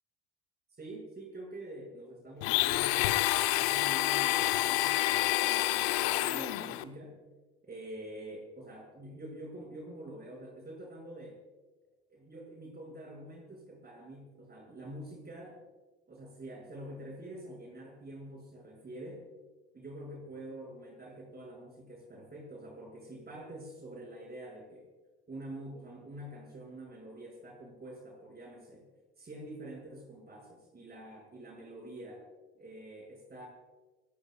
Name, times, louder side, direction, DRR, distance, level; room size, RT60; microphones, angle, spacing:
voice 1, 0.8-7.2 7.6-11.4 12.1-15.6 16.1-19.3 19.7-24.9 25.3-28.9 29.2-32.3 32.5-33.5, right 1 dB, 30° right, 0 dB, 6.4 m, -46 dB
Domestic sounds home sounds, 2.4-6.8, left 18 dB, 65° left, 0.9 m, -28 dB
27.0 x 19.0 x 2.4 m, 1.2 s
hypercardioid pair, 60°, 32 cm